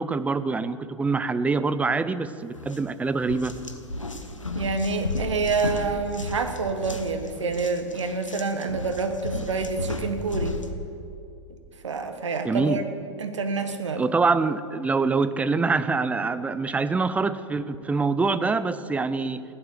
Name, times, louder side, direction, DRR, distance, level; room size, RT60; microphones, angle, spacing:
voice 1, 0.0-3.5 12.4-12.8 14.0-19.4, right 4 dB, 10° right, 14 dB, 0.5 m, -25 dB
sound 1, 2.6-2.8 3.2-10.7, left 2 dB, 90° left, 1.2 m, -33 dB
voice 2, 4.5-10.6 11.8-12.8 13.2-14.0, right 4 dB, 70° right, 7 dB, 1.3 m, -27 dB
16.0 x 11.5 x 6.9 m, 2.6 s
figure-of-eight pair, 95°, 16 cm